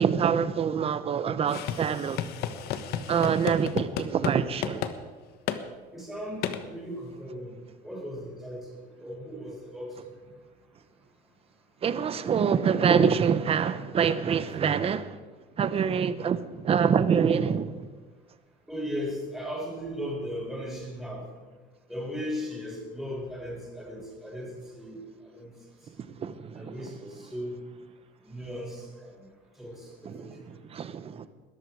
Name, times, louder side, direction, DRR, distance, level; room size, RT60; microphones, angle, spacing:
voice 1, 0.0-2.2 3.1-4.9 11.8-15.2 15.6-17.9 26.0-26.9 30.0-31.3, right 7 dB, 35° right, 1.0 m, -26 dB
sound 1, 1.5-4.4 4.6-4.9 5.5-5.6 6.4-6.6, left 9 dB, 60° left, 1.3 m, -32 dB
voice 2, 5.9-7.5 7.8-8.7 9.0-9.9 18.7-21.3 21.9-25.0 25.3-25.5 25.9-26.0 26.5-27.6 28.2-29.2 29.6-30.3, equal, ahead, 6.9 m, -37 dB
20.5 x 13.0 x 4.8 m
cardioid pair, 135°, 18 cm